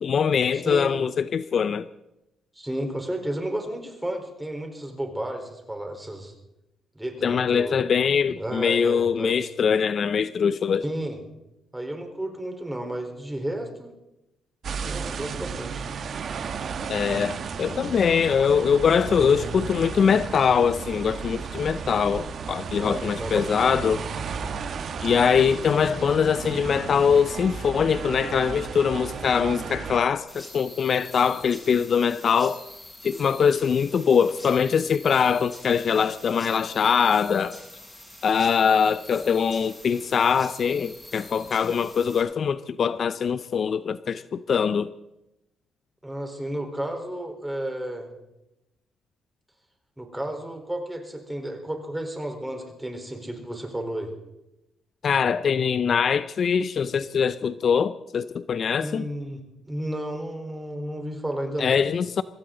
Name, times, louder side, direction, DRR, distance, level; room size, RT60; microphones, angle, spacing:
voice 1, 0.0-1.9 7.2-10.8 16.9-24.0 25.0-32.6 33.0-37.6 38.2-44.9 55.0-59.1 61.6-62.2, left 6 dB, 50° left, 0.5 m, -23 dB
voice 2, 0.5-0.9 2.5-6.3 7.0-7.8 8.4-9.3 10.8-11.2 11.7-13.9 14.8-15.9 22.7-23.8 46.0-48.1 50.0-54.1 58.8-61.8, right 1 dB, 10° right, 4.0 m, -32 dB
sound 1, 14.6-30.0, right 6 dB, 55° right, 1.3 m, -34 dB
sound 2, 30.3-42.2, left 1 dB, 15° left, 7.8 m, -45 dB
23.5 x 16.0 x 3.9 m
cardioid pair, 90°, 0 cm